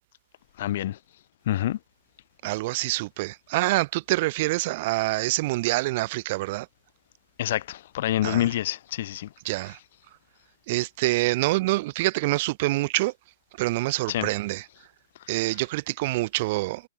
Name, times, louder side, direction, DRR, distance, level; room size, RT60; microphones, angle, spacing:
voice 1, 0.6-1.0 1.5-1.8 7.4-9.3 14.1-14.3 15.4-15.5, left 13 dB, 55° left, 5.8 m, -27 dB
voice 2, 2.4-6.7 8.2-8.4 9.4-9.8 10.7-13.1 13.6-14.6 15.3-16.8, right 20 dB, 45° right, 7.6 m, -26 dB
figure-of-eight pair, 110°, 0 cm